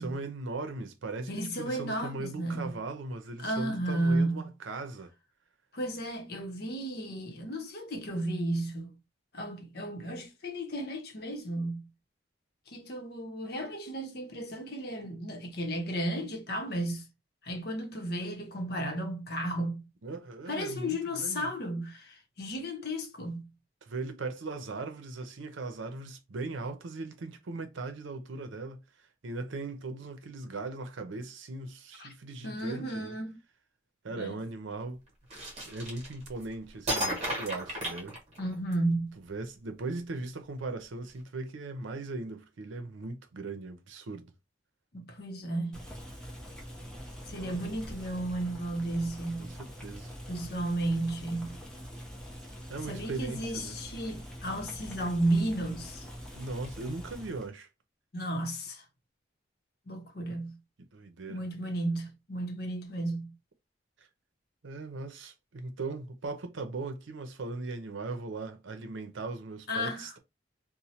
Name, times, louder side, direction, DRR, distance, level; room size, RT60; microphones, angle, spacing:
voice 1, 0.0-5.1 20.0-21.5 23.8-28.8 29.2-33.2 34.0-35.0 35.6-38.2 39.2-44.3 47.4-47.6 49.4-50.1 52.7-53.8 56.3-57.7 60.9-61.4 64.0-64.1 64.6-70.2, right 3 dB, 85° right, 0.6 m, -39 dB
voice 2, 1.3-2.7 3.4-4.4 5.7-8.9 9.3-11.9 12.7-17.1 17.4-19.9 20.5-23.5 32.0-32.1 32.4-33.4 34.1-34.4 38.4-39.1 44.9-45.8 47.3-49.5 50.3-51.6 52.9-56.1 58.1-58.8 59.9-60.6 61.3-63.3 69.7-70.1, right 1 dB, 55° left, 0.8 m, -33 dB
sound 1, 35.3-36.4 36.9-38.7, equal, 35° right, 1.1 m, -33 dB
Boiling, 45.7-57.5, equal, 5° left, 0.6 m, -44 dB
3.1 x 2.1 x 2.7 m
head